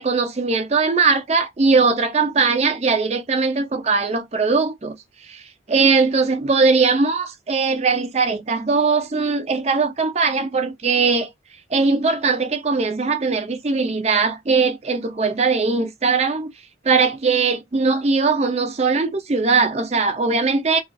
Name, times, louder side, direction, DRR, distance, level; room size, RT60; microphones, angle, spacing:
voice 1, 0.0-5.0 5.2-5.4 5.7-11.3 11.7-16.5 16.8-20.8, right 4 dB, 35° right, 0.4 m, -20 dB
2.4 x 2.4 x 2.2 m
head